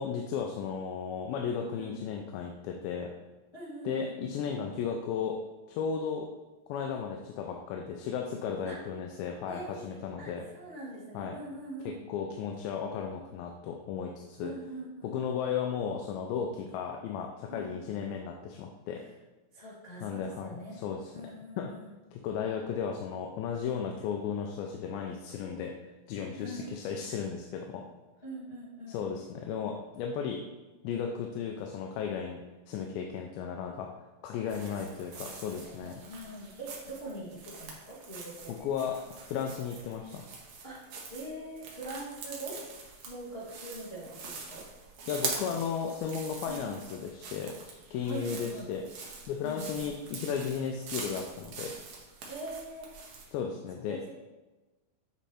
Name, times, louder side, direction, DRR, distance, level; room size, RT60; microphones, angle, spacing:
voice 1, 0.0-3.1 3.9-5.4 5.7-6.3 6.7-10.4 11.1-11.3 11.9-14.5 15.0-19.0 20.0-21.1 21.6-21.7 22.1-25.7 26.1-27.8 28.9-30.4 30.8-32.4 32.7-33.9 34.2-36.0 38.5-40.2 45.1-47.5 47.9-48.8 49.3-51.7 53.3-54.0, left 7 dB, 90° left, 2 dB, 2.4 m, -35 dB
voice 2, 3.5-4.1 8.6-8.8 9.5-12.0 14.4-15.2 17.5-17.7 18.9-19.1 19.5-20.8 21.1-21.9 26.4-26.8 28.2-29.0 34.6-38.6 40.6-40.8 41.1-42.6 43.0-44.6 46.5-46.6 48.0-48.7 49.4-49.6 52.2-52.9 53.9-54.1, right 1 dB, 60° left, -10 dB, 0.6 m, -43 dB
sound 1, 34.5-53.3, right 4 dB, 70° right, 1.7 m, -44 dB
8.7 x 3.1 x 4.2 m, 1.1 s
omnidirectional pair, 4.2 m